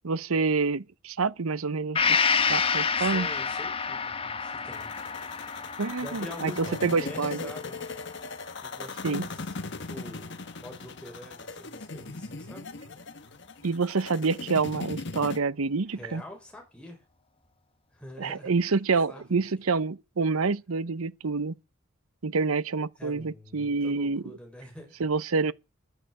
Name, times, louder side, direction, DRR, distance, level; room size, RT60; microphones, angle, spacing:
voice 1, 0.0-3.3 5.8-7.5 9.0-9.2 13.6-16.2 18.2-21.6 22.2-24.2 25.0-25.5, right 4 dB, 80° right, 0.8 m, -27 dB
Gong, 1.9-9.6 10.0-10.1, left 5 dB, 25° left, 1.0 m, -29 dB
voice 2, 2.9-4.9 6.0-7.9 8.6-9.5 9.9-10.3 10.6-12.7 15.9-17.0 17.9-18.8 19.1-19.4 23.0-25.0, left 1 dB, 5° left, 5.9 m, -45 dB
sound 1, 4.7-15.4, left 3 dB, 55° left, 1.5 m, -39 dB
11.5 x 10.0 x 8.0 m
head